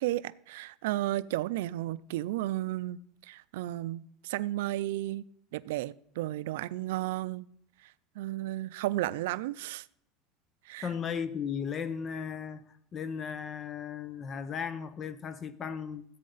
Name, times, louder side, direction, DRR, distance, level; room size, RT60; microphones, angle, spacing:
voice 1, 0.0-5.2 5.5-7.5 7.8-9.9 10.7-10.9, right 15 dB, 85° right, 0.4 m, -33 dB
voice 2, 10.8-12.7 12.9-16.0, left 7 dB, 25° left, 0.6 m, -36 dB
14.0 x 8.4 x 4.0 m
cardioid pair, 165°, 0 cm